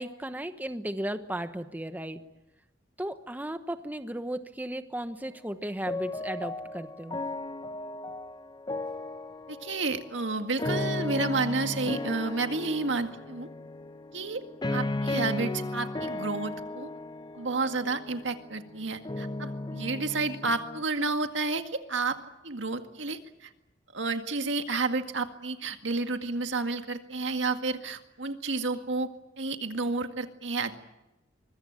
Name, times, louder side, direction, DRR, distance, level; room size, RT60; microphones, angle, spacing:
voice 1, 0.0-2.2 3.0-7.2, right 1 dB, 10° right, 8 dB, 1.1 m, -35 dB
sound 1, 5.9-20.8, left 2 dB, 25° left, 0.8 m, -35 dB
voice 2, 9.5-13.5 14.1-14.4 14.7-16.9 17.3-22.2 22.4-23.5 23.9-29.1 29.4-30.8, right 3 dB, 75° right, 6 dB, 2.0 m, -31 dB
24.5 x 22.5 x 9.0 m, 0.95 s
head